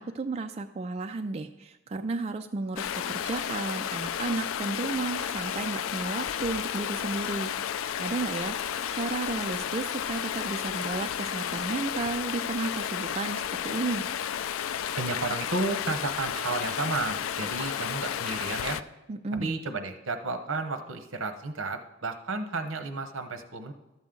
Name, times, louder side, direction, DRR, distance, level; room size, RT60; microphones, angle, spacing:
voice 1, 0.0-7.5 8.0-8.6 8.9-14.0 19.1-19.6, right 3 dB, 30° right, 6 dB, 0.3 m, -33 dB
Stream, 2.8-18.8, left 9 dB, 85° left, 0.4 m, -32 dB
voice 2, 15.0-18.8 19.4-23.7, right 3 dB, 80° right, 7 dB, 0.9 m, -32 dB
12.5 x 7.3 x 3.8 m, 1.0 s
head